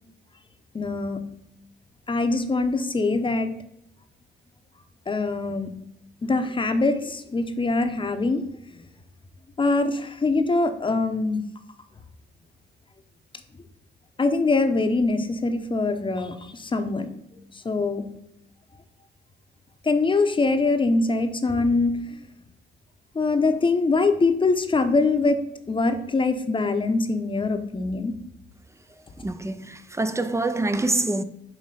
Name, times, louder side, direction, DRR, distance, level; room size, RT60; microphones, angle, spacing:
voice 1, 0.7-1.2 2.1-3.5 5.1-5.7 6.2-8.4 9.6-11.4 14.2-17.1 17.6-18.0 19.9-22.0 23.1-25.4 25.7-28.1, left 3 dB, 25° left, 0.9 m, -23 dB
voice 2, 29.2-31.2, right 2 dB, 15° right, 0.5 m, -26 dB
7.5 x 2.9 x 5.7 m
cardioid pair, 90°, 20 cm